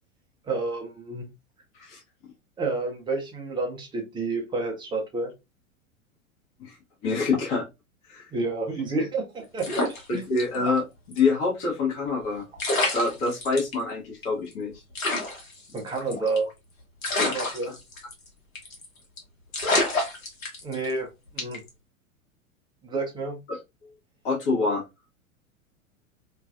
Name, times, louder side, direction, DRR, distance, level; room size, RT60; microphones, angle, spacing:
voice 1, 0.5-1.3 2.6-5.3 8.3-10.2 15.7-16.5 17.3-17.7 20.6-21.1 21.3-21.6 22.8-23.4, right 3 dB, 10° right, 0.5 m, -29 dB
voice 2, 7.0-7.7 8.1-8.3 10.1-12.4 12.9-14.8 17.2-17.4 23.5-23.9 24.2-24.8, left 4 dB, 40° left, 0.9 m, -26 dB
sound 1, 9.6-10.8 11.1-11.2 12.2-12.3 12.6-13.7 14.2-14.3 14.5-14.6 14.9-16.5 17.0-18.3 18.5-18.8 19.2-19.3 19.5-20.9 21.4-21.7, left 2 dB, 75° left, 1.1 m, -28 dB
2.4 x 2.3 x 2.3 m
figure-of-eight pair, 95°, 41 cm